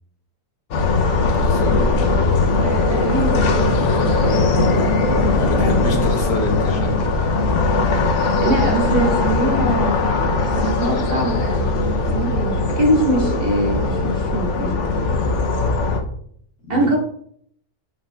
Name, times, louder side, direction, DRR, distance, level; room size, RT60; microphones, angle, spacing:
sound 1, 0.7-16.0, left 3 dB, 60° left, 1.0 m, -19 dB
voice 1, 1.2-2.2 5.3-7.1 16.6-16.9, left 2 dB, 85° left, 1 dB, 1.7 m, -27 dB
voice 2, 2.6-3.8 4.2-4.9 5.6-5.9 8.4-10.1 10.6-14.7 16.7-17.0, right 1 dB, 40° right, -1 dB, 1.5 m, -23 dB
7.1 x 5.6 x 2.3 m, 0.66 s
omnidirectional pair, 1.6 m